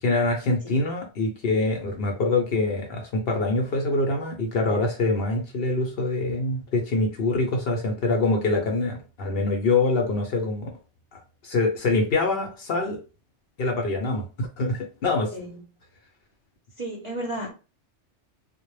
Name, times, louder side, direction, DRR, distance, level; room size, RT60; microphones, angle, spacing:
voice 1, 0.0-10.7 11.1-13.0 13.6-15.3, left 2 dB, 60° left, 2 dB, 0.7 m, -25 dB
voice 2, 16.8-17.5, right 1 dB, 40° right, -3 dB, 0.5 m, -33 dB
2.1 x 2.0 x 3.0 m, 0.33 s
omnidirectional pair, 1.2 m